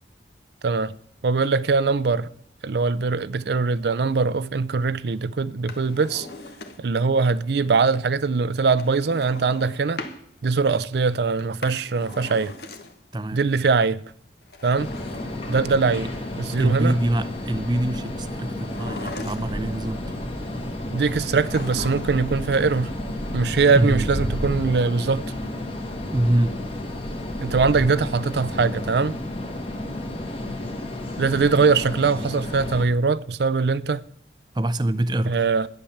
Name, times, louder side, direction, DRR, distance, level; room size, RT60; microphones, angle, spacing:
voice 1, 1.2-2.3 2.6-6.3 6.8-10.0 10.4-12.5 13.3-14.0 14.6-14.9 15.5-16.1 16.4-17.0 20.9-22.9 23.3-25.2 27.4-29.2 31.2-34.0 35.3-35.7, right 4 dB, 75° right, 0.5 m, -22 dB
Drawer open or close, 5.5-7.1 8.7-10.2 11.4-13.2 14.4-16.1 18.5-19.8 21.2-22.3 22.6-22.7, left 2 dB, 70° left, 1.5 m, -39 dB
sound 1, 14.8-32.8, left 1 dB, 30° left, 1.6 m, -31 dB
voice 2, 16.6-20.0 23.7-24.1 26.1-26.5 34.5-35.4, right 1 dB, 25° right, 0.5 m, -24 dB
12.0 x 10.0 x 7.1 m
head